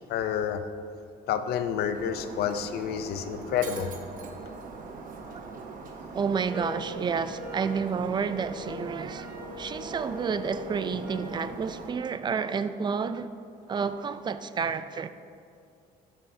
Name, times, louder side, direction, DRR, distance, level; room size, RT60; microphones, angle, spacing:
voice 1, 0.1-0.6 1.3-3.9, left 8 dB, 70° left, 0.6 m, -29 dB
Shatter, 1.9-11.9, right 4 dB, 55° right, 1.0 m, -42 dB
voice 2, 6.1-9.3 9.6-13.3 13.7-15.1, right 6 dB, 25° right, 0.4 m, -30 dB
sound 1, 6.5-11.4, left 3 dB, 10° right, 1.6 m, -43 dB
12.5 x 7.1 x 2.7 m
cardioid pair, 110°, 17 cm